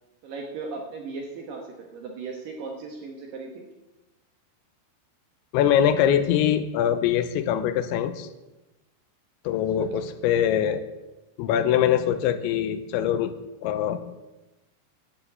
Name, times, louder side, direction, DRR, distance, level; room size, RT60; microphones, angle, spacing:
voice 1, 0.2-3.7 9.8-9.9, right 4 dB, 65° right, 1 dB, 2.3 m, -37 dB
voice 2, 5.5-8.3 9.5-10.8 11.4-13.3 13.6-14.1, left 10 dB, 85° left, 11 dB, 3.0 m, -23 dB
11.0 x 7.7 x 8.1 m, 1.0 s
omnidirectional pair, 5.3 m